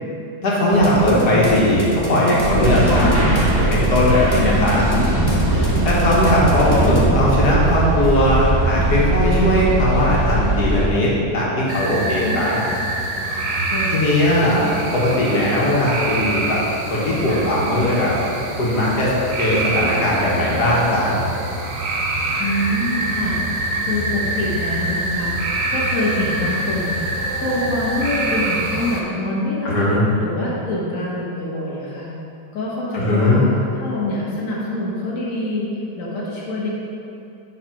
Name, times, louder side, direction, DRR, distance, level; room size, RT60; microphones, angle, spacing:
voice 1, 0.4-3.1 3.7-4.8 5.8-12.6 13.9-16.6 16.9-18.1 18.6-21.2 29.7-30.1 32.9-33.5, left 1 dB, 80° left, -6 dB, 1.9 m, -18 dB
sound 1, 0.7-8.1, equal, 20° left, 0.8 m, -26 dB
sound 2, 2.4-10.9, right 2 dB, 45° right, 1.6 m, -20 dB
voice 2, 2.9-3.3 4.3-5.3 5.8-6.5 12.2-12.4 13.7-14.4 17.3-17.5 22.4-27.1 27.4-29.8 30.2-32.1 32.5-33.5 33.8-35.7 36.0-36.7, left 1 dB, 55° left, -6 dB, 1.6 m, -26 dB
sound 3, 11.7-29.0, right 2 dB, 80° right, 1.4 m, -25 dB
7.3 x 4.1 x 5.8 m, 2.8 s
omnidirectional pair, 1.7 m